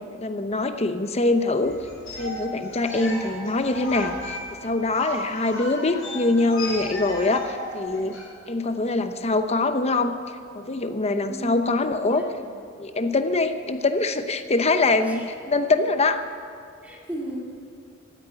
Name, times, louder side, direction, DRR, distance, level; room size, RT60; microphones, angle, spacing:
voice 1, 0.1-1.8 2.2-8.2 8.5-10.2 10.5-12.2 12.8-16.2, left 2 dB, 30° left, 8 dB, 0.9 m, -24 dB
sound 1, 1.6-8.3, left 2 dB, 75° left, 4.0 m, -35 dB
voice 2, 11.3-11.8 12.1-12.5 15.1-15.2 16.8-17.4, equal, 5° right, -2 dB, 2.4 m, -35 dB
15.0 x 9.6 x 9.4 m, 2.5 s
head